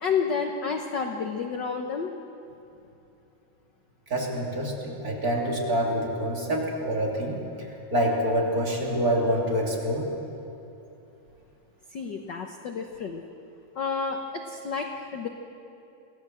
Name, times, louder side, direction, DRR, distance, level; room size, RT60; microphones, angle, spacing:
voice 1, 0.0-2.1 11.9-13.2 13.7-15.3, left 5 dB, 65° left, 3 dB, 1.0 m, -30 dB
voice 2, 4.1-10.1, equal, 30° right, -2 dB, 3.4 m, -26 dB
26.5 x 17.0 x 7.8 m, 2.8 s
omnidirectional pair, 3.6 m